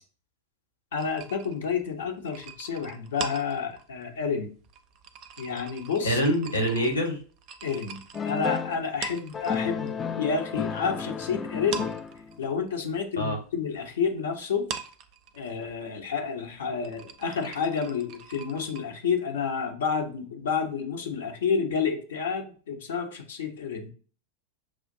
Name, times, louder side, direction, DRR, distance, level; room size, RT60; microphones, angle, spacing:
voice 1, 0.9-4.5 5.4-6.2 7.6-12.0 12.4-14.7 15.3-23.9, left 6 dB, 60° left, 3 dB, 0.8 m, -30 dB
sound 1, 0.9-9.9 10.2-11.2 11.5-18.8, right 7 dB, 40° right, 0.5 m, -42 dB
voice 2, 6.0-7.2 13.2-13.4, equal, 80° left, 1 dB, 1.2 m, -25 dB
sound 2, 8.1-8.8 9.3-12.4, left 6 dB, 20° left, 0.4 m, -32 dB
6.1 x 2.5 x 2.6 m, 0.40 s
figure-of-eight pair, 90°, 0 cm